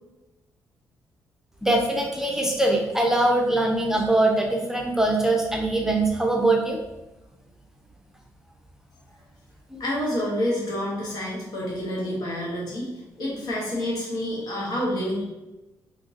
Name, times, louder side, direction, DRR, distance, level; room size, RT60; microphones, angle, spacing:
voice 1, 1.6-6.8 9.7-9.8, right 2 dB, 5° right, 0 dB, 0.6 m, -22 dB
voice 2, 9.8-12.9 13.2-15.2, left 1 dB, 75° left, -4 dB, 1.3 m, -28 dB
3.7 x 2.8 x 2.7 m, 1.0 s
cardioid pair, 95°, 7 cm